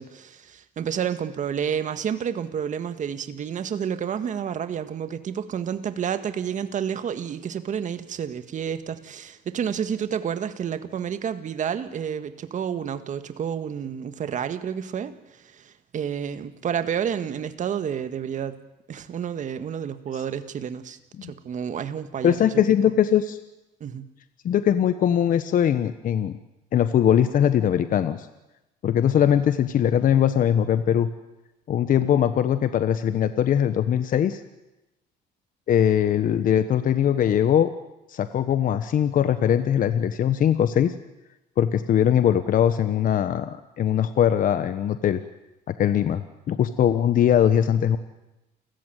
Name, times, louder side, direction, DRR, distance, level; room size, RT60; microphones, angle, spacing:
voice 1, 0.0-18.6 18.9-22.6 23.8-24.1, right 8 dB, 45° right, 10 dB, 1.7 m, -30 dB
voice 2, 22.2-23.4 24.4-26.4 26.7-28.3 28.8-31.1 31.7-34.4 35.7-37.7 38.1-40.9 41.6-45.2 45.8-48.0, left 9 dB, 55° left, 11 dB, 1.2 m, -21 dB
29.0 x 15.0 x 9.3 m, 0.98 s
cardioid pair, 110°, 17 cm